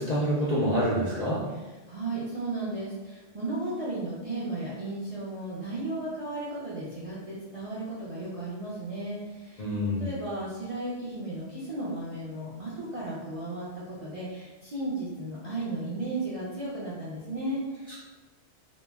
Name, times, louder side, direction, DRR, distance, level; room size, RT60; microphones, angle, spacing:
voice 1, 0.0-1.4 9.6-10.1, equal, 60° left, -6 dB, 0.4 m, -26 dB
voice 2, 1.5-9.6 10.0-17.9, right 2 dB, 55° right, -8 dB, 0.3 m, -35 dB
2.2 x 2.0 x 3.4 m, 1.2 s
omnidirectional pair, 1.3 m